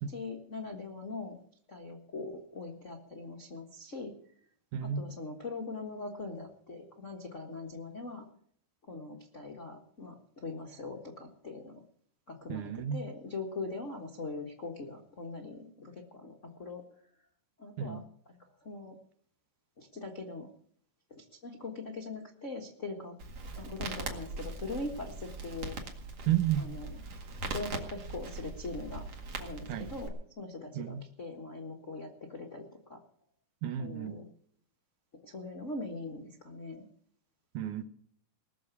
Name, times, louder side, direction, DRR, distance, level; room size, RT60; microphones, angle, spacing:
voice 1, 0.1-1.4 1.7-4.1 4.8-8.3 8.8-11.8 12.3-16.8 17.6-18.0 18.3-18.9 19.8-20.5 21.1-23.2 23.6-25.8 26.6-26.9 27.4-29.0 29.4-33.0 33.8-34.2 35.2-36.9, left 3 dB, 45° left, 0.9 m, -41 dB
voice 2, 4.7-5.0 12.5-13.0 17.8-18.0 26.3-26.7 29.7-29.9 30.7-31.0 33.6-34.2 37.5-37.8, right 10 dB, 70° right, 2.2 m, -32 dB
Crackle, 23.2-30.1, right 3 dB, 50° right, 2.8 m, -41 dB
19.5 x 7.0 x 8.2 m
omnidirectional pair, 4.0 m